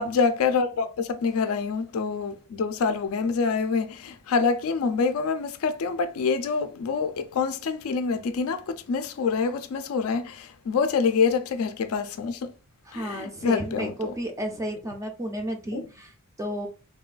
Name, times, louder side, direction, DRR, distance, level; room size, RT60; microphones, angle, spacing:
voice 1, 0.0-12.5 12.9-14.1 15.7-15.8, left 5 dB, 65° left, 0.4 m, -26 dB
voice 2, 12.8-16.7, equal, 15° right, 0.3 m, -33 dB
3.2 x 2.2 x 2.3 m
head